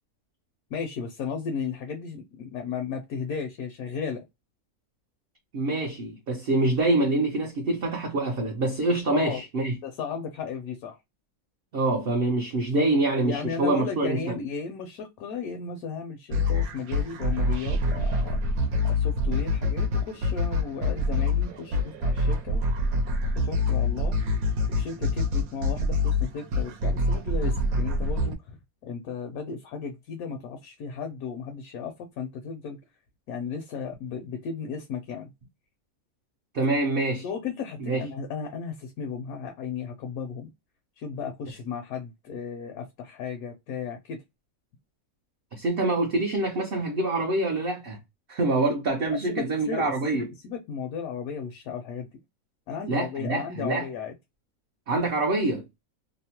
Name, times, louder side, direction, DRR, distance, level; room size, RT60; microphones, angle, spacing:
voice 1, 0.7-4.2 9.1-9.4 9.8-11.0 13.2-18.4 18.8-22.6 23.4-24.2 24.7-32.8 33.3-35.3 37.2-40.5 41.0-44.2 49.1-52.1 52.7-54.1, left 6 dB, 75° left, 1.0 m, -35 dB
voice 2, 5.5-9.8 11.7-14.3 36.5-37.2 37.8-38.1 45.5-48.0 48.3-50.3 52.9-53.9 54.9-55.6, right 2 dB, 60° right, 0.6 m, -25 dB
sound 1, 16.3-28.3, left 2 dB, 75° right, 1.0 m, -26 dB
2.8 x 2.0 x 2.8 m
omnidirectional pair, 1.6 m